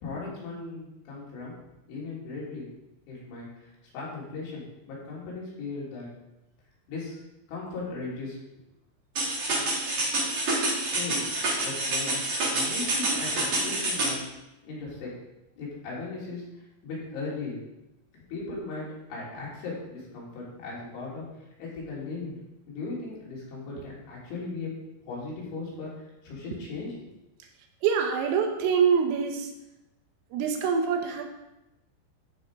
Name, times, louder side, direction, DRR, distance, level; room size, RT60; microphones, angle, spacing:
voice 1, 0.0-1.5 1.9-2.7 3.1-3.5 3.9-6.1 6.9-7.2 7.5-8.4 10.8-11.3 11.6-12.2 12.5-14.3 14.6-15.1 15.6-16.4 16.8-17.6 18.3-21.2 21.6-22.4 22.7-24.7 25.1-27.1, left 3 dB, 70° left, -6 dB, 5.8 m, -37 dB
sound 1, 9.2-14.2, right 2 dB, 35° right, 3.9 m, -27 dB
voice 2, 27.8-29.5 30.3-31.2, right 6 dB, 80° right, 3 dB, 3.7 m, -25 dB
14.0 x 6.4 x 4.9 m, 0.92 s
omnidirectional pair, 5.9 m